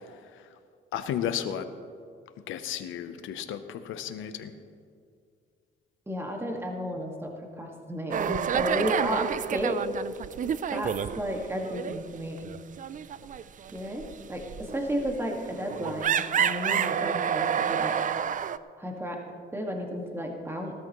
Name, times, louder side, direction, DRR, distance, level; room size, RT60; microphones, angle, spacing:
voice 1, 0.0-0.6 0.9-1.7 2.5-4.6, left 9 dB, 85° left, 9 dB, 0.8 m, -34 dB
voice 2, 6.1-9.8 10.7-12.5 13.7-14.0 14.3-17.9 18.8-19.2 19.5-20.7, equal, 10° right, 1 dB, 1.9 m, -33 dB
sound 1, 8.1-11.5 11.7-12.0 12.4-18.6, right 8 dB, 40° right, 0.4 m, -29 dB
18.5 x 13.0 x 3.1 m, 2.2 s
cardioid pair, 90°, 20 cm